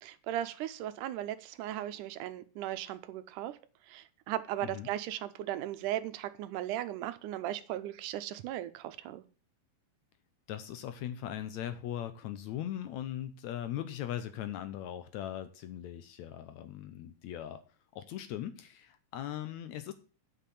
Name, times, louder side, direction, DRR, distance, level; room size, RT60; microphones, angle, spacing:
voice 1, 0.0-3.6 3.9-9.2, right 13 dB, 85° right, 11 dB, 2.2 m, -37 dB
voice 2, 10.5-17.6 17.9-19.9, left 11 dB, 75° left, 10 dB, 1.8 m, -39 dB
8.4 x 5.8 x 6.9 m, 0.37 s
omnidirectional pair, 3.6 m